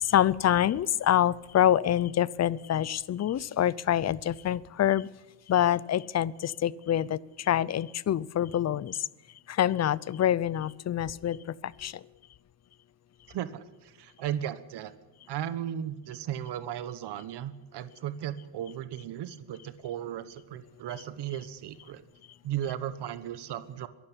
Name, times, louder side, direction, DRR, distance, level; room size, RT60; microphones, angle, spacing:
voice 1, 0.0-5.1 5.5-9.0 9.5-12.0, left 11 dB, 40° left, 22 dB, 0.6 m, -26 dB
voice 2, 13.3-14.9 15.3-22.0 22.4-23.9, right 10 dB, 70° right, 13 dB, 1.4 m, -36 dB
23.0 x 12.5 x 10.0 m, 1.0 s
cardioid pair, 135°, 41 cm